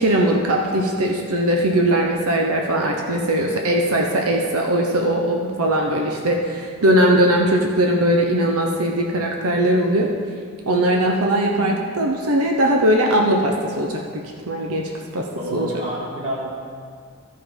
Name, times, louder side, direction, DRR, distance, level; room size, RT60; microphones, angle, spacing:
voice 1, 0.0-10.1 10.7-14.0 14.5-14.8 15.1-15.3 15.5-15.7, right 1 dB, 80° right, 1 dB, 0.8 m, -19 dB
voice 2, 15.3-16.5, equal, 25° right, -6 dB, 2.3 m, -28 dB
13.5 x 5.4 x 5.3 m, 2.1 s
head